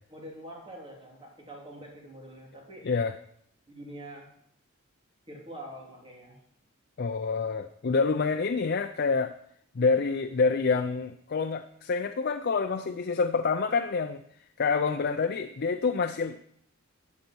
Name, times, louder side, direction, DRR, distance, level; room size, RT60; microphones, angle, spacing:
voice 1, 0.1-2.9 3.7-4.3 5.3-6.4, right 1 dB, 25° right, -2 dB, 3.4 m, -45 dB
voice 2, 7.0-9.3 9.8-14.2 14.6-16.4, left 4 dB, 50° left, 8 dB, 0.5 m, -27 dB
13.0 x 8.1 x 4.5 m, 0.70 s
head